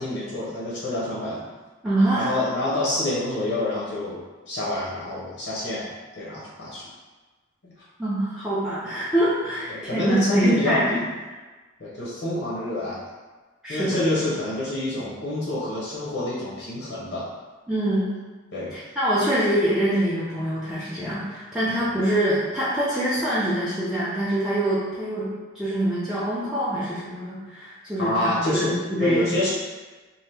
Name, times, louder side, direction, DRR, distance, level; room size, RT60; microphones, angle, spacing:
voice 1, 0.0-1.4 2.1-4.2 4.5-5.9 6.2-6.9 7.6-7.7 9.7-11.1 11.8-13.0 13.7-17.3 18.5-18.7 28.0-28.7 29.0-29.5, left 1 dB, 75° left, -7 dB, 0.7 m, -27 dB
voice 2, 1.8-2.3 8.0-11.0 13.6-14.0 17.7-18.1 18.7-29.3, right 1 dB, ahead, -11 dB, 0.4 m, -25 dB
2.7 x 2.5 x 3.3 m, 1.3 s
head